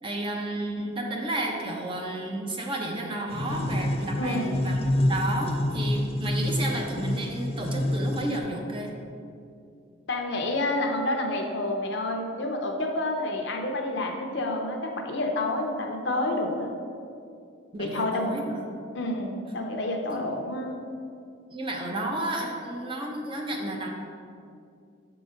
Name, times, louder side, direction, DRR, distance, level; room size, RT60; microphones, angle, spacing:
voice 1, 0.0-8.9 17.7-18.7 20.1-20.2 21.5-23.9, right 1 dB, 25° right, 1 dB, 0.6 m, -32 dB
sound 1, 3.3-8.4, left 1 dB, 30° left, 0.3 m, -27 dB
voice 2, 4.2-4.6 10.1-16.7 17.8-18.4 18.9-20.8, left 2 dB, 60° left, 2 dB, 0.7 m, -29 dB
6.9 x 3.9 x 5.1 m, 2.4 s
head